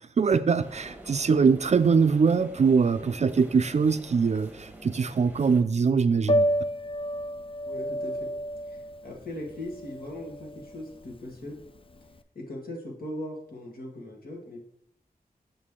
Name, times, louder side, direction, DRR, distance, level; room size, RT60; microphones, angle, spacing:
voice 1, 0.2-6.5, right 5 dB, 45° right, 11 dB, 0.4 m, -23 dB
sound 1, 0.6-5.6, right 1 dB, 10° right, 1.1 m, -47 dB
Piano, 6.2-12.2, equal, 35° left, 0.4 m, -30 dB
voice 2, 7.6-8.3 8.7-11.6 12.4-14.6, left 1 dB, 75° left, -1 dB, 1.9 m, -39 dB
6.5 x 6.4 x 3.7 m, 0.71 s
wide cardioid pair, 80°, 15 cm